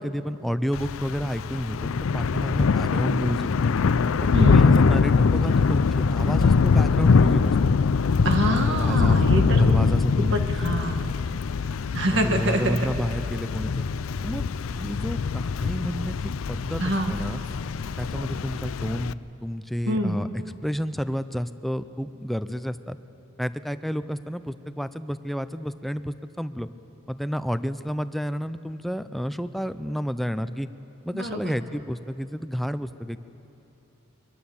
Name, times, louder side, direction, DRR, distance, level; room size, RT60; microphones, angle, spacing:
voice 1, 0.0-3.8 4.2-7.6 8.7-9.2 9.5-10.4 10.9-11.4 12.1-13.9 14.2-14.4 14.7-16.2 16.5-17.4 18.0-20.3 20.6-23.0 23.4-26.7 27.1-30.7 31.0-33.2, equal, ahead, 12 dB, 0.5 m, -30 dB
Thunder / Rain, 0.7-19.1, left 5 dB, 70° left, 0.5 m, -23 dB
voice 2, 4.3-4.7 8.2-9.6 10.3-11.1 11.9-12.8 16.8-17.1 19.9-20.2 31.1-31.5, right 1 dB, 60° right, 4 dB, 1.9 m, -25 dB
23.5 x 22.0 x 7.2 m, 3.0 s
head